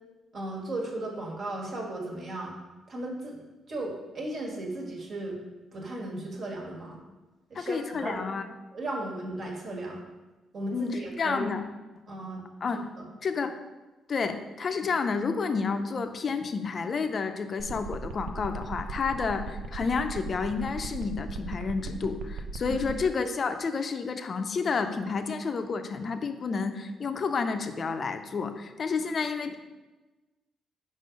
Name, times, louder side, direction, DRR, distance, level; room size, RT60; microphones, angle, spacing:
voice 1, 0.3-2.5 2.9-3.4 3.7-5.4 5.7-7.0 7.5-8.3 8.7-10.0 10.5-11.5 12.1-12.4 12.7-13.0 22.7-22.8, right 1 dB, 55° right, -1 dB, 1.5 m, -36 dB
voice 2, 7.5-8.4 10.7-11.6 12.6-12.9 13.2-13.6 14.1-29.5, left 5 dB, 45° left, 8 dB, 0.5 m, -30 dB
sound 1, 17.6-23.0, right 4 dB, 85° right, 0.4 m, -37 dB
5.1 x 3.7 x 5.1 m, 1.2 s
cardioid pair, 90°, 0 cm